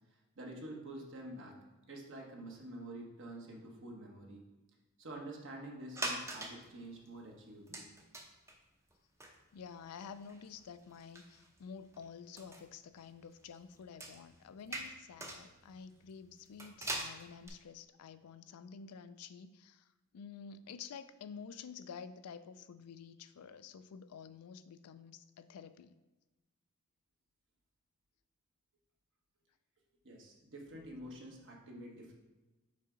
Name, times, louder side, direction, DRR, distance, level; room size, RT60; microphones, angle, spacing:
voice 1, 0.3-1.6 1.9-4.5 5.0-7.9 30.0-32.1, right 1 dB, 60° right, 0 dB, 1.2 m, -48 dB
sound 1, 5.9-6.7 7.0-7.1 7.7-8.5 8.9-9.0 9.2-12.0 12.4-17.5, right 1 dB, 15° right, 0.6 m, -43 dB
voice 2, 9.2-25.9, left 6 dB, 85° left, 12 dB, 0.4 m, -50 dB
5.3 x 4.8 x 3.9 m, 1.1 s
head